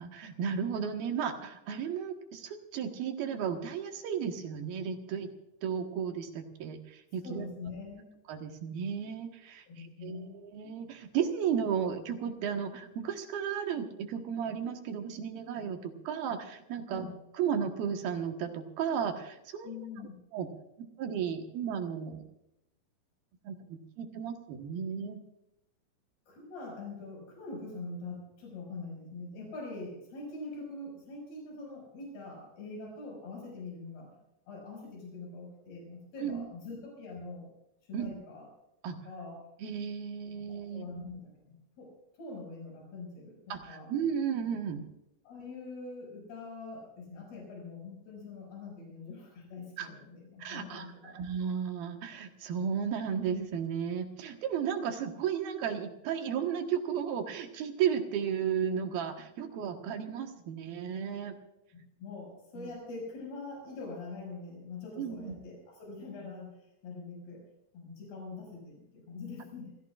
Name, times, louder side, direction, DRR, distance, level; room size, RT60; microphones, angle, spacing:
voice 1, 0.0-5.3 5.6-7.4 8.3-17.1 17.4-19.7 20.3-20.5 21.0-22.2 23.4-25.2 36.2-36.4 37.9-38.1 38.8-39.0 39.6-40.9 43.5-44.9 49.8-49.9 50.4-61.4 62.6-62.7 65.0-65.4, right 7 dB, 70° right, 5 dB, 3.2 m, -34 dB
voice 2, 7.2-8.1 9.7-10.4 16.9-17.2 19.6-20.2 26.3-34.1 34.5-37.5 37.9-38.5 38.9-39.4 40.5-43.9 45.2-51.2 62.0-67.4 67.7-69.8, left 3 dB, 80° left, -1 dB, 8.1 m, -44 dB
27.5 x 16.0 x 2.5 m, 0.86 s
omnidirectional pair, 4.6 m